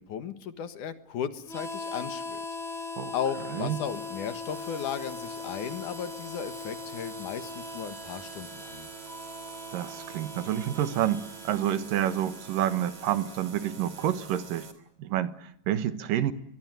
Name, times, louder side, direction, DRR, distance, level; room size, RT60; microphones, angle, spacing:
voice 1, 0.0-2.4 3.1-8.9, left 8 dB, 65° left, 2.9 m, -35 dB
Harmonica, 1.4-14.1, left 3 dB, ahead, 4.4 m, -41 dB
sound 1, 3.8-14.7, right 4 dB, 35° right, 3.6 m, -47 dB
voice 2, 9.7-14.7 15.0-16.3, right 11 dB, 80° right, 3.0 m, -29 dB
23.5 x 23.0 x 9.4 m
omnidirectional pair, 3.9 m